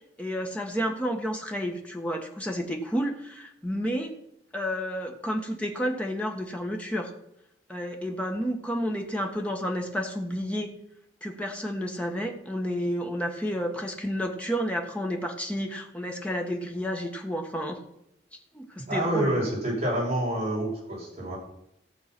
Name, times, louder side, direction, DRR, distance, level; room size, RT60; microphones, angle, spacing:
voice 1, 0.2-4.2 4.5-7.1 7.7-10.7 11.2-17.8 18.5-19.3, equal, 10° left, 2 dB, 1.5 m, -31 dB
voice 2, 18.9-21.4, right 1 dB, 35° right, -4 dB, 5.8 m, -27 dB
15.5 x 6.8 x 6.1 m, 0.78 s
head